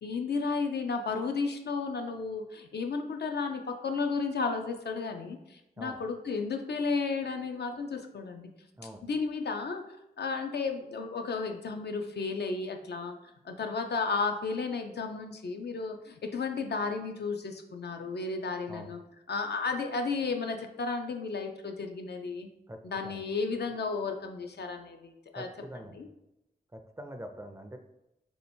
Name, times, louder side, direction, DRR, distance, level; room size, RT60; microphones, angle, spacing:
voice 1, 0.0-8.5 9.0-9.8 10.2-13.2 13.4-19.0 19.3-22.5 22.8-25.5 25.9-26.1, left 4 dB, 75° left, 5 dB, 0.5 m, -33 dB
voice 2, 22.7-23.2 25.4-26.1 26.7-27.8, equal, 15° right, 5 dB, 0.3 m, -44 dB
3.4 x 2.8 x 4.2 m, 0.90 s
wide cardioid pair, 105°, 17 cm